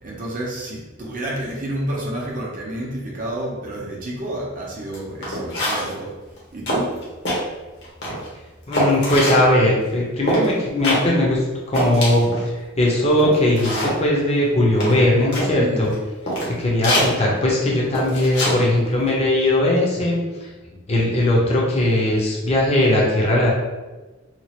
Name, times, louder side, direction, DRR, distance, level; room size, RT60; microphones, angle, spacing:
voice 1, 0.0-6.1 6.5-7.0 15.6-15.8, right 1 dB, 40° right, -4 dB, 0.6 m, -29 dB
sound 1, 4.9-5.0 5.2-6.0 6.4-6.5 6.7-7.4 7.8-8.3 8.7-9.4 10.3-10.5 10.8-11.0 11.4-11.5 11.7-12.4 12.9-13.0 13.2-14.0 14.8-15.5 15.9-16.0 16.3-16.5 16.8-17.1 17.9-18.6 18.9-19.1, equal, 55° left, 1.0 m, -23 dB
voice 2, 8.7-15.9 16.6-20.2 20.9-23.5, left 1 dB, 30° left, -3 dB, 0.7 m, -19 dB
2.9 x 2.4 x 2.8 m, 1.2 s
head